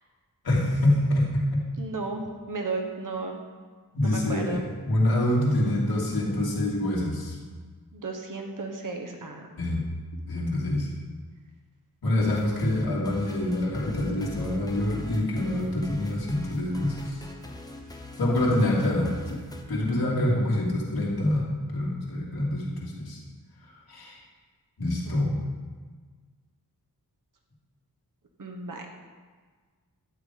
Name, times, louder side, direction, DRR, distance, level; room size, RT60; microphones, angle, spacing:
voice 1, 0.4-1.6 3.9-4.6 4.8-7.4 9.6-9.8 10.3-10.9 12.0-17.2 18.2-19.4 19.7-21.4 21.7-23.2 23.9-24.2 24.8-25.4, left 1 dB, 80° left, -5 dB, 2.8 m, -26 dB
voice 2, 1.8-3.4 4.0-4.6 7.9-9.5 25.0-25.4 28.4-28.9, right 3 dB, 60° right, 3 dB, 1.4 m, -34 dB
sound 1, 12.2-19.6, left 2 dB, 10° left, 0.9 m, -42 dB
12.0 x 4.8 x 8.5 m, 1.5 s
wide cardioid pair, 160°, 37 cm